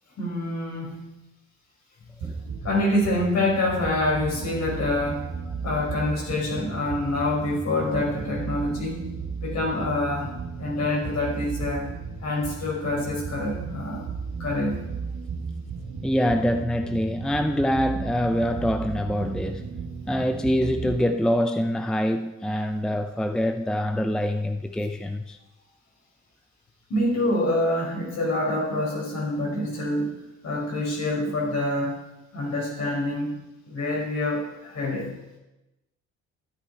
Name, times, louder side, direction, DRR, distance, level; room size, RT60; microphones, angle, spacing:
voice 1, 0.2-1.1 2.6-5.3 5.6-9.0 9.4-10.3 10.6-11.9 12.2-14.0 14.4-14.8 26.9-30.2 30.4-32.0 32.3-33.4 33.6-35.1, left 1 dB, 60° left, 4.9 m, -26 dB
sound 1, 2.2-21.0, right 5 dB, 90° right, 1.9 m, -35 dB
voice 2, 16.0-19.6 20.1-25.4, equal, ahead, 0.6 m, -25 dB
13.0 x 9.7 x 4.6 m
cardioid pair, 90°, 30 cm